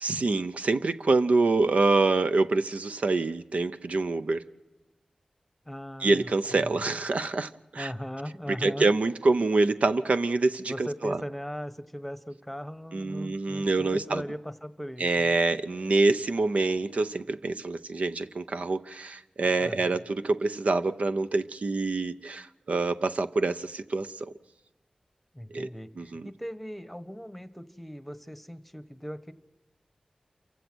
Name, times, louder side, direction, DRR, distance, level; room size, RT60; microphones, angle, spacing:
voice 1, 0.0-4.5 6.0-7.9 8.5-10.7 11.0-11.2 12.9-14.2 15.0-24.3 25.5-25.7 26.0-26.2, right 3 dB, 75° right, 0.7 m, -26 dB
voice 2, 5.6-6.8 7.8-8.9 10.7-15.4 19.6-20.0 25.3-29.3, equal, 5° left, 1.2 m, -39 dB
28.0 x 16.0 x 6.2 m
wide cardioid pair, 65°, 2 cm